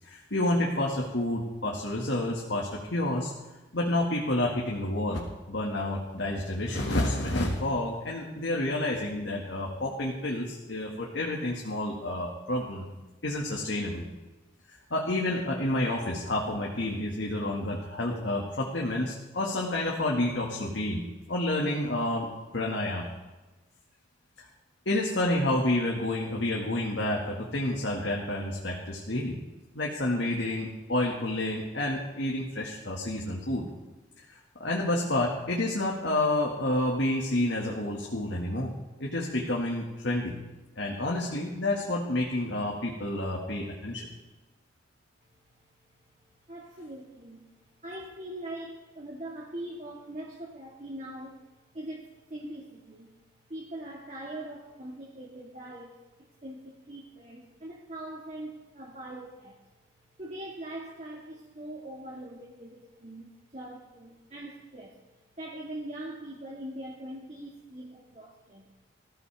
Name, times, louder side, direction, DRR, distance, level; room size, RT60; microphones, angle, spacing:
voice 1, 0.0-3.3 3.7-12.8 13.2-14.0 14.7-21.0 21.3-23.1 24.4-24.5 24.9-29.3 29.7-33.7 34.3-38.7 39.0-40.3 40.8-44.1, left 1 dB, 70° left, -2 dB, 2.0 m, -29 dB
voice 2, 46.5-47.4 47.8-51.4 51.7-53.1 53.5-59.6 60.2-65.0 65.4-68.7, right 1 dB, 35° right, -3 dB, 2.0 m, -42 dB
20.5 x 14.5 x 3.5 m, 1.1 s
head